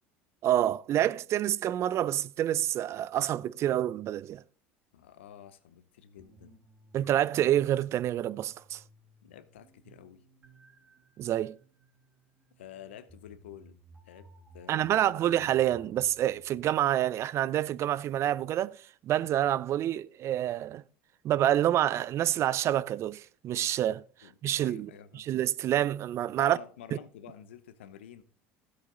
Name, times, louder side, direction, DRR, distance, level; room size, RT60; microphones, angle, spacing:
voice 1, 0.4-4.4 6.9-8.8 11.2-11.5 14.7-20.8 21.2-26.6, right 12 dB, 50° right, 0.4 m, -28 dB
voice 2, 4.9-6.6 9.2-10.2 12.6-13.8 14.0-14.3 14.5-15.2 24.2-25.3 26.3-28.2, left 9 dB, 90° left, 0.8 m, -49 dB
sound 1, 6.2-16.5, equal, 25° right, 1.8 m, -59 dB
13.0 x 8.1 x 3.8 m
hypercardioid pair, 85°, 6 cm